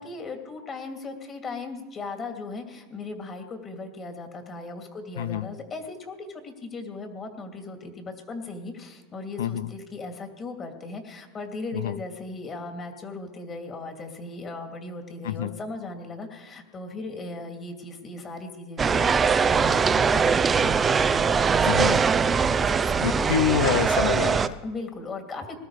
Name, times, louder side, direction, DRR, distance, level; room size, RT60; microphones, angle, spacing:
voice 1, 0.0-23.4 24.6-25.6, left 3 dB, 30° left, 5 dB, 2.6 m, -37 dB
voice 2, 5.2-5.5 9.4-9.7 11.7-12.0 15.2-15.5 21.6-22.0 23.0-24.6, left 9 dB, 85° left, 15 dB, 0.7 m, -27 dB
sound 1, 18.8-24.5, right 5 dB, 25° right, 0.6 m, -21 dB
20.0 x 13.0 x 4.9 m, 1.2 s
supercardioid pair, 110°, 0 cm